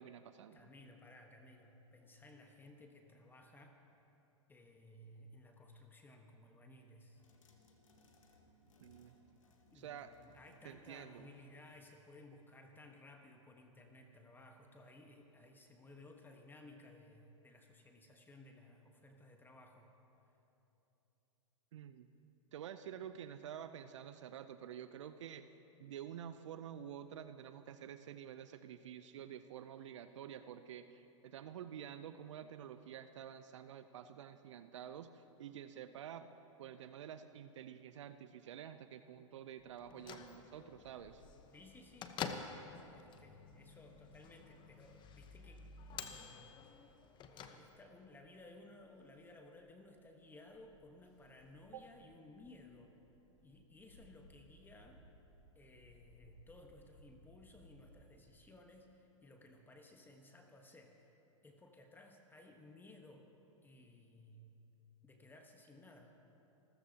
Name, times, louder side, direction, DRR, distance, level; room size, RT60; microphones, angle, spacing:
voice 1, 0.0-0.6 8.8-9.2 9.7-10.1 10.6-11.3 21.7-22.1 22.5-25.5 25.8-36.3 36.6-41.2 51.7-51.8, right 9 dB, 65° right, 11 dB, 0.6 m, -49 dB
voice 2, 0.5-3.8 4.5-7.2 9.7-19.9 41.5-45.6 45.9-47.0 47.3-52.9 53.4-55.0 55.5-61.1 61.4-63.3 63.6-64.6 65.0-66.1, left 2 dB, 10° left, 3 dB, 1.3 m, -59 dB
sound 1, 7.1-12.2, left 1 dB, 80° left, 1.8 m, -68 dB
Bell / Microwave oven, 39.8-48.1, left 6 dB, 30° left, 1.0 m, -49 dB
Bird / Wind, 41.0-58.0, equal, 65° left, 3.9 m, -67 dB
28.0 x 14.0 x 2.9 m, 3.0 s
hypercardioid pair, 105°, 17 cm